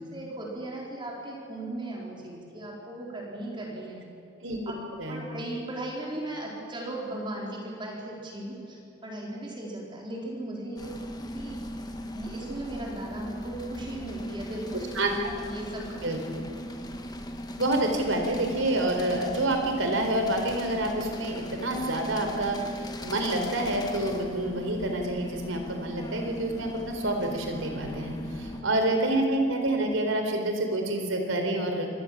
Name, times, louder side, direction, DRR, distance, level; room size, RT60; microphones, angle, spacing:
voice 1, 0.0-4.0 4.7-4.8 5.1-10.9 11.3-11.6 12.1-16.0 16.4-16.5 28.5-28.8, right 1 dB, 25° right, -2 dB, 4.3 m, -37 dB
sound 1, 10.8-28.6, equal, 20° left, 1.5 m, -38 dB
voice 2, 17.6-31.9, right 1 dB, 75° right, 4 dB, 4.1 m, -28 dB
26.0 x 18.5 x 7.4 m, 2.7 s
head